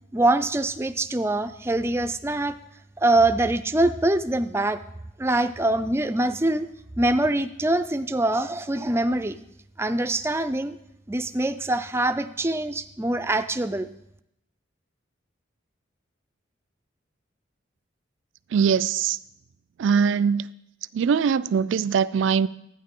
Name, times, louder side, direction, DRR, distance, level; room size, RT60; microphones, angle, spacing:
voice 1, 0.1-2.5 3.0-4.8 5.2-6.7 7.0-9.4 9.8-10.8 11.1-13.9, right 2 dB, 15° right, 0.4 m, -24 dB
voice 2, 18.5-19.2 19.8-20.5 20.9-22.5, right 6 dB, 80° right, 0.4 m, -21 dB
12.5 x 9.4 x 3.7 m
head